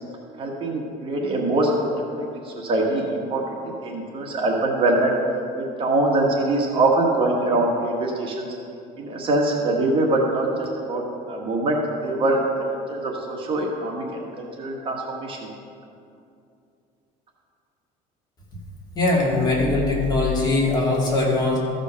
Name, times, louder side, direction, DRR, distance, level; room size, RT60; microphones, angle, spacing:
voice 1, 0.4-3.4 3.8-5.1 5.6-8.5 9.0-11.8 12.0-12.4 12.7-15.5, right 2 dB, 35° right, -1 dB, 1.4 m, -23 dB
voice 2, 18.9-21.6, left 2 dB, 25° left, -4 dB, 2.4 m, -21 dB
14.5 x 5.2 x 6.2 m, 2.5 s
cardioid pair, 145°, 16 cm